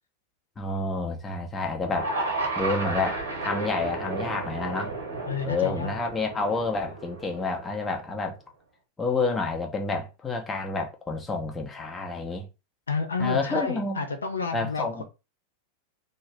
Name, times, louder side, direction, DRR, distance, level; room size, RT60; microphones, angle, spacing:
voice 1, 0.6-2.1 2.6-5.0 5.4-8.4 9.0-12.5 13.2-14.0 14.5-15.0, left 3 dB, 15° left, 0.7 m, -29 dB
sound 1, 1.8-8.1, right 2 dB, 65° right, 0.9 m, -33 dB
voice 2, 5.3-6.0 12.9-15.0, left 4 dB, 75° left, 0.4 m, -30 dB
2.6 x 2.1 x 3.2 m
figure-of-eight pair, 90°, 0 cm